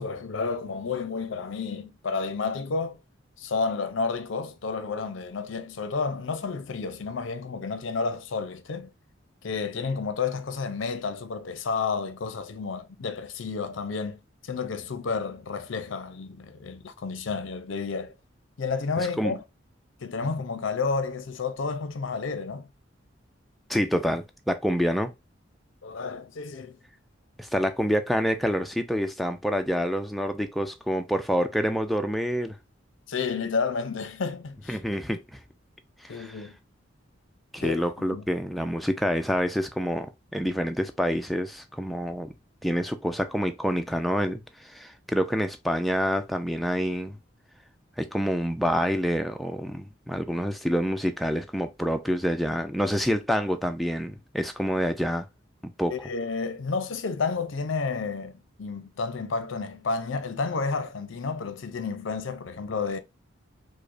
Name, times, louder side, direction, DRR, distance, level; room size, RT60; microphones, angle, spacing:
voice 1, 0.0-3.0 3.4-8.9 9.4-18.1 18.6-19.4 20.0-22.7 25.8-26.8 33.1-34.8 36.1-36.5 37.6-38.2 55.9-63.0, left 4 dB, 75° left, 0.5 m, -31 dB
voice 2, 19.0-19.3 23.7-25.1 27.4-32.6 34.7-35.2 36.0-36.3 37.5-42.3 42.6-47.2 48.0-55.3 55.6-55.9, equal, ahead, 0.3 m, -27 dB
4.9 x 2.1 x 2.5 m
head